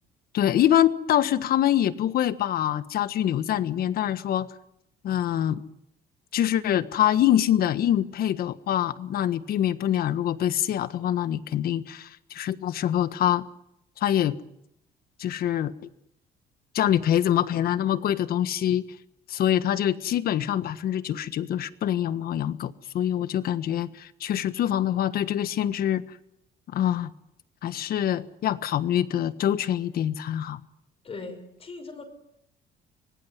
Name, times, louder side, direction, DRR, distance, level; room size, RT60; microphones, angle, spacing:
voice 1, 0.3-4.5 5.0-5.6 6.3-13.4 14.0-14.4 15.2-15.7 16.7-18.8 19.3-26.0 26.7-27.1 27.6-30.6, left 11 dB, 60° left, 13 dB, 1.5 m, -25 dB
voice 2, 31.0-32.0, left 3 dB, 35° left, 5 dB, 5.7 m, -39 dB
25.5 x 18.5 x 9.6 m, 0.78 s
cardioid pair, 110°, 17 cm